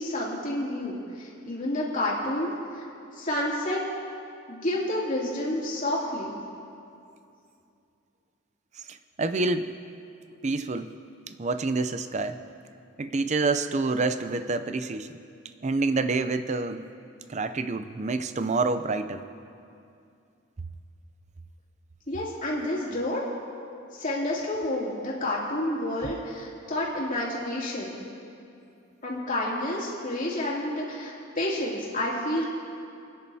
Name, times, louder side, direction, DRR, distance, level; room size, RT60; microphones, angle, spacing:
voice 1, 0.0-2.9 3.1-3.8 4.5-6.4 22.1-23.2 23.9-28.0 29.0-32.5, left 1 dB, 40° left, -6 dB, 2.7 m, -29 dB
voice 2, 8.9-9.7 10.4-10.9 11.4-12.4 13.0-15.1 15.6-16.8 17.3-19.2, right 3 dB, 35° right, 10 dB, 0.5 m, -27 dB
29.0 x 10.0 x 2.8 m, 2.5 s
head